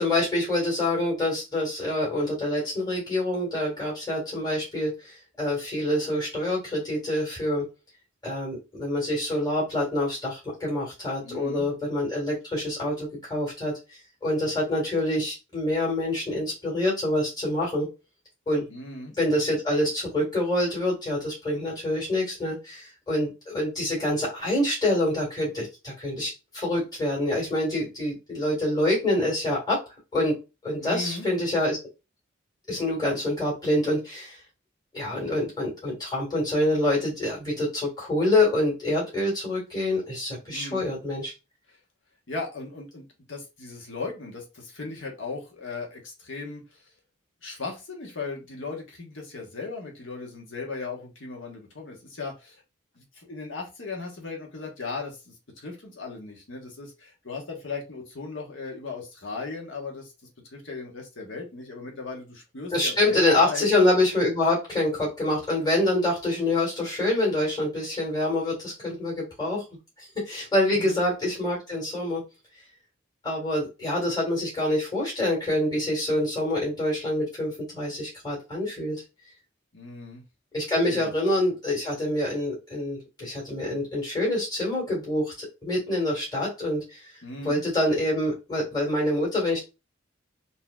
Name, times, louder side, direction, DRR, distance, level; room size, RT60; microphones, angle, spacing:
voice 1, 0.0-7.6 8.2-13.7 14.2-17.9 18.5-18.7 19.2-29.8 30.1-30.4 30.6-31.8 32.7-34.4 34.9-41.3 62.7-69.6 70.0-72.2 73.2-79.0 80.5-87.0 87.4-89.6, left 1 dB, 20° left, -5 dB, 1.8 m, -26 dB
voice 2, 11.2-11.7 18.7-19.1 30.8-31.3 40.5-40.9 42.3-46.8 47.4-52.6 53.0-60.1 60.5-63.7 70.7-71.0 79.7-80.2 80.8-81.1 87.2-87.6, left 3 dB, 70° left, 0 dB, 1.2 m, -37 dB
4.0 x 2.8 x 2.3 m, 0.27 s
head